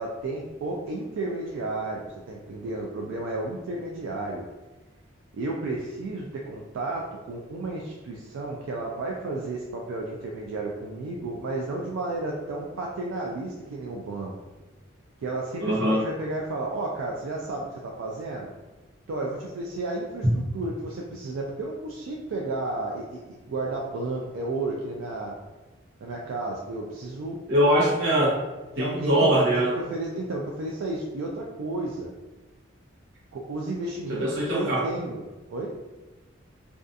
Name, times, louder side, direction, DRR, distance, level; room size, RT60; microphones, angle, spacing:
voice 1, 0.0-4.4 5.3-14.3 15.2-18.5 19.1-25.4 26.0-27.4 28.8-32.1 33.3-35.2 35.5-35.7, right 2 dB, 85° right, -1 dB, 0.3 m, -32 dB
voice 2, 15.6-16.0 27.5-28.4 28.7-29.7 34.1-34.8, right 1 dB, 65° right, -6 dB, 0.9 m, -22 dB
2.6 x 2.3 x 2.3 m, 1.2 s
head